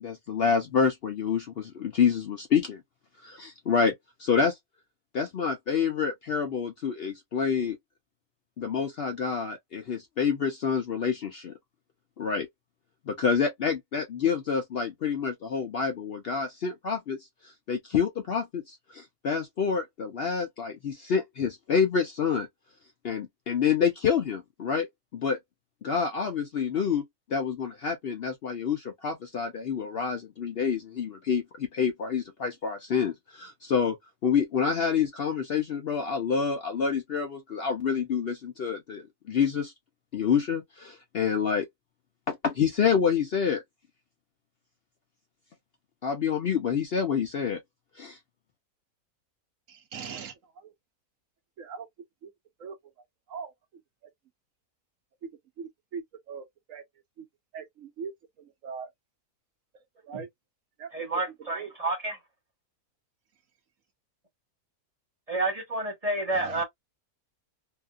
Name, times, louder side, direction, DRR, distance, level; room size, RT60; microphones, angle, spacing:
voice 1, 0.0-2.8 3.2-3.9 4.2-4.6 5.1-7.8 8.6-11.5 12.2-12.5 13.1-17.2 17.4-22.5 23.0-24.9 25.1-25.4 25.8-27.0 27.3-33.9 34.2-39.7 40.1-41.7 42.3-43.6 46.0-47.6 48.0-48.2, left 6 dB, 65° left, 0.6 m, -27 dB
voice 2, 49.7-50.7 51.6-51.9 52.2-52.3 52.6-52.8 53.3-53.5 54.0-54.1 55.2-55.3 55.6-56.8 57.2-57.3 57.5-58.9 59.7-60.3 60.8-61.2 61.5-61.7 66.3-66.6, right 6 dB, 65° right, 1.0 m, -41 dB
voice 3, 60.9-62.2 65.3-66.6, right 2 dB, 25° right, 1.1 m, -29 dB
2.8 x 2.5 x 2.3 m
omnidirectional pair, 1.6 m